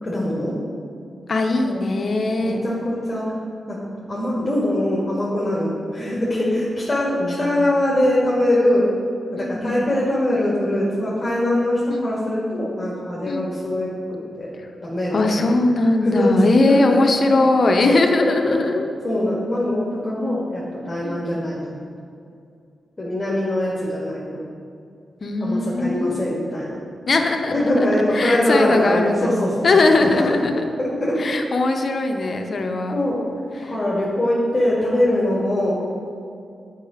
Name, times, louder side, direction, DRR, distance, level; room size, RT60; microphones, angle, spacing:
voice 1, 0.0-0.5 1.6-1.8 2.4-3.3 3.7-3.8 4.1-8.9 9.3-14.5 14.8-15.4 16.0-16.4 16.7-18.6 19.0-21.8 23.0-24.2 25.4-26.8 27.5-30.3 30.8-31.2 32.9-33.2 33.7-35.7, left 1 dB, 30° left, -6 dB, 1.9 m, -22 dB
voice 2, 1.3-2.6 7.2-7.6 9.4-9.9 11.9-12.1 13.3-13.5 14.6-14.7 15.1-18.8 21.0-21.2 25.2-26.3 27.1-27.9 28.1-29.3 29.6-30.7 31.2-32.9 33.5-33.7, left 2 dB, 55° left, 4 dB, 0.8 m, -20 dB
8.4 x 4.8 x 5.0 m, 2.4 s
cardioid pair, 70°, 0 cm